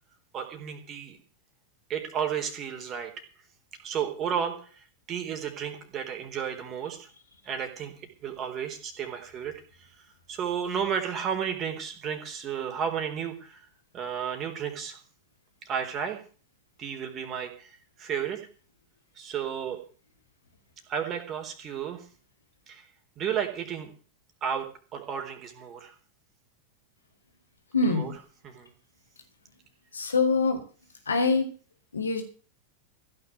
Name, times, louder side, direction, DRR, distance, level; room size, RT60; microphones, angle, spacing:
voice 1, 0.3-1.2 1.9-3.1 3.8-7.1 7.4-7.9 8.2-13.7 13.9-15.0 15.6-16.2 16.8-18.5 19.2-19.8 20.9-22.1 22.7-22.9 23.2-23.9 24.4-25.9 27.8-28.1 28.4-28.7, right 8 dB, 30° right, 5 dB, 3.9 m, -33 dB
voice 2, 27.7-28.1 29.9-30.6 31.1-31.5 31.9-32.2, left 4 dB, 75° left, 5 dB, 3.2 m, -24 dB
16.0 x 6.8 x 9.3 m, 0.40 s
figure-of-eight pair, 90°, 0 cm